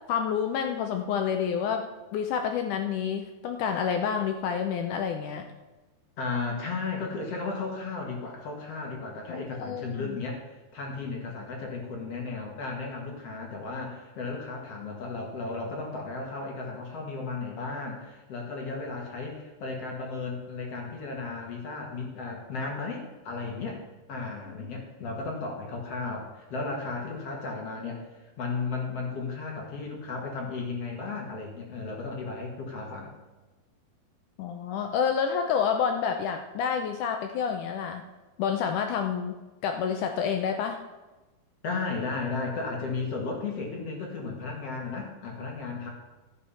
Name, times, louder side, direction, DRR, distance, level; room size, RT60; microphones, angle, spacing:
voice 1, 0.1-1.8 2.1-5.5 9.3-10.2 34.4-38.0 38.4-39.4 39.6-40.8, left 7 dB, 80° left, 5 dB, 1.8 m, -28 dB
voice 2, 6.2-10.4 10.7-23.8 24.1-33.1 41.6-45.9, left 4 dB, 50° left, 0 dB, 2.2 m, -34 dB
13.5 x 7.0 x 5.6 m, 1.1 s
omnidirectional pair, 4.4 m